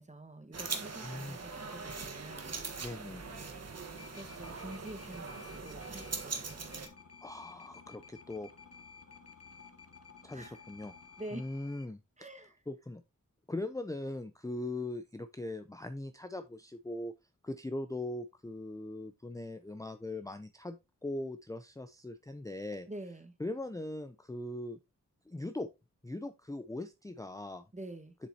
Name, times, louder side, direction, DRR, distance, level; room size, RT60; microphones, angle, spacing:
voice 1, 0.0-2.6 4.1-6.9 10.3-10.6 11.2-11.4 12.2-12.6 22.9-23.3 27.7-28.1, right 1 dB, 20° right, 1.6 m, -47 dB
sound 1, 0.5-6.9, right 4 dB, 50° right, 1.4 m, -41 dB
voice 2, 1.0-1.4 2.8-3.4 7.2-8.5 10.2-10.9 11.3-12.0 12.7-13.0 13.5-17.1 17.4-20.8 21.0-22.9 23.4-24.8 25.3-25.7 26.0-27.7, left 2 dB, 10° left, 0.6 m, -40 dB
sound 2, 4.0-11.9, left 5 dB, 45° left, 1.2 m, -54 dB
7.5 x 6.9 x 2.8 m
wide cardioid pair, 70°, 33 cm